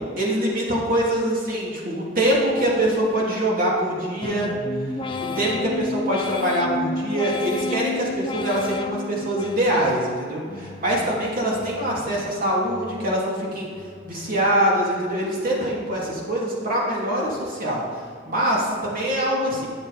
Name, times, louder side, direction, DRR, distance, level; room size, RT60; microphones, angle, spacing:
voice 1, 0.2-4.5 5.2-13.7 14.0-17.8 18.2-19.7, right 1 dB, 50° right, -4 dB, 2.9 m, -24 dB
sound 1, 4.2-10.0 10.5-11.1 11.5-12.2 12.6-13.3 13.7-14.3 14.8-15.4, left 3 dB, 30° left, 0.6 m, -32 dB
11.5 x 7.1 x 5.1 m, 2.1 s
head